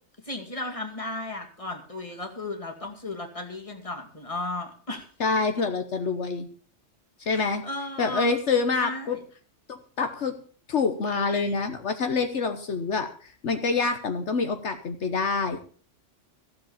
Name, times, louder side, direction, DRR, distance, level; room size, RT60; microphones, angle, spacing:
voice 1, 0.2-5.1 5.5-5.7 7.3-8.3 8.8-9.2, left 2 dB, 25° left, 3 dB, 2.5 m, -35 dB
voice 2, 5.2-6.5 7.2-7.6 8.0-9.2 9.7-10.3 10.7-15.6, left 4 dB, 70° left, 7 dB, 1.4 m, -26 dB
15.5 x 7.7 x 7.1 m, 0.42 s
omnidirectional pair, 1.2 m